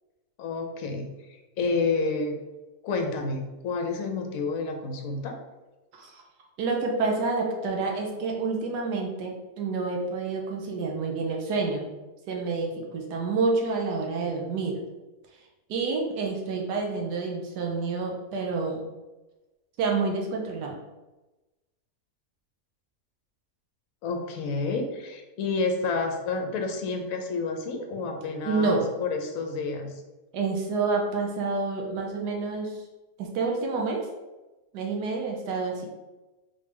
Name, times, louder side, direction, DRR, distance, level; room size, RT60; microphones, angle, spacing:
voice 1, 0.4-1.1 1.6-2.4 2.8-5.3 24.0-29.9, left 3 dB, 65° left, 4 dB, 1.0 m, -29 dB
voice 2, 6.6-11.9 12.3-14.8 15.7-18.9 19.8-20.8 28.4-28.9 30.3-32.8 33.2-34.1 34.7-35.9, right 4 dB, 90° right, 0 dB, 1.3 m, -28 dB
3.8 x 3.3 x 3.3 m, 1.1 s
omnidirectional pair, 1.7 m